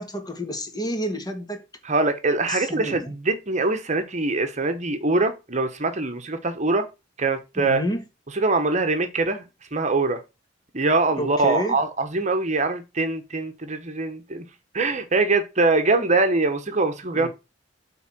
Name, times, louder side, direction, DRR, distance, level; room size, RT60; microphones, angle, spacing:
voice 1, 0.0-1.6 2.5-3.1 7.5-8.0 11.2-11.8 17.1-17.3, equal, 20° left, 1.6 m, -29 dB
voice 2, 1.8-6.8 7.2-7.8 8.4-9.4 9.7-10.2 10.7-14.4 14.7-17.3, right 3 dB, 40° right, 1.1 m, -23 dB
8.1 x 3.8 x 6.0 m
head